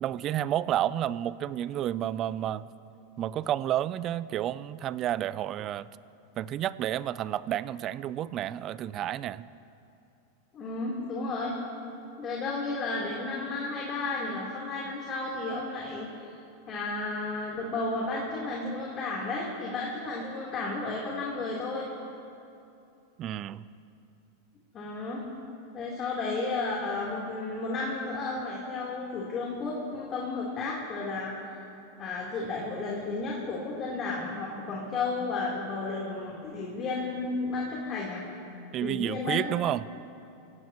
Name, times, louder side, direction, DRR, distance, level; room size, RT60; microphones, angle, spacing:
voice 1, 0.0-2.7 3.2-5.9 6.4-9.5 23.2-23.6 38.7-39.9, right 11 dB, 40° right, 18 dB, 0.5 m, -30 dB
voice 2, 10.5-11.5 12.2-16.1 16.7-21.9 24.7-25.3 25.7-31.6 32.0-38.3 38.8-39.5, left 3 dB, 35° left, -4 dB, 3.6 m, -33 dB
25.5 x 17.5 x 3.1 m, 2.7 s
hypercardioid pair, 110°, 0 cm